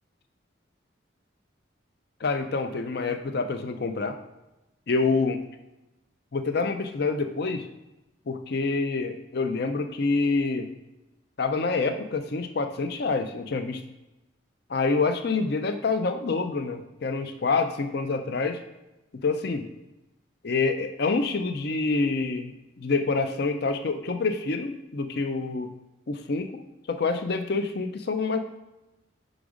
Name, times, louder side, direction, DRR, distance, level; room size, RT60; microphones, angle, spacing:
voice 1, 2.2-4.2 4.9-5.4 6.3-7.6 8.3-10.7 11.4-13.8 14.7-18.6 19.2-19.7 20.4-22.5 22.8-25.7 26.1-26.5 26.9-28.4, left 4 dB, 55° left, 8 dB, 0.5 m, -27 dB
5.1 x 5.0 x 4.9 m, 0.97 s
head